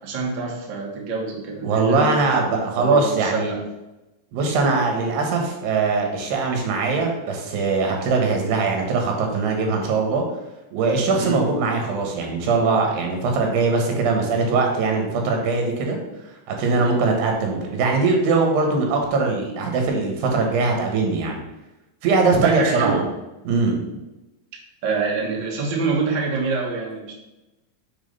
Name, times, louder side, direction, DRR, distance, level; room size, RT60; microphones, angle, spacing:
voice 1, 0.0-3.6 8.2-8.4 11.2-11.4 16.8-17.0 22.3-23.1 24.8-27.1, right 4 dB, 55° right, -2 dB, 1.3 m, -26 dB
voice 2, 1.6-3.6 4.3-10.2 10.7-16.0 16.5-21.4 22.0-23.0 23.5-23.8, right 4 dB, 90° right, 2 dB, 3.5 m, -21 dB
7.4 x 4.3 x 5.4 m, 0.99 s
omnidirectional pair, 4.6 m